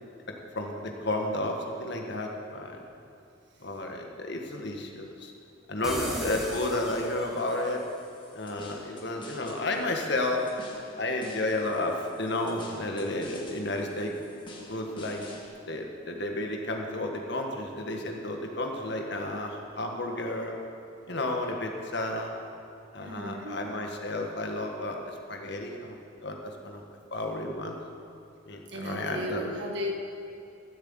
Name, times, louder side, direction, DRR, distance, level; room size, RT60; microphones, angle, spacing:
voice 1, 0.5-2.8 3.6-5.3 5.7-7.8 8.3-10.4 11.0-14.1 14.7-15.2 15.6-20.6 21.1-22.3 22.9-26.4 26.6-26.8 27.1-27.8 28.5-29.4, left 2 dB, 60° left, 2 dB, 1.7 m, -32 dB
sound 1, 5.8-7.7, equal, ahead, 2.0 m, -36 dB
sound 2, 7.5-15.5, left 1 dB, 25° left, 1.8 m, -49 dB
voice 2, 23.0-23.7 28.7-29.9, equal, 60° right, 0 dB, 1.8 m, -35 dB
14.5 x 7.8 x 7.9 m, 2.5 s
head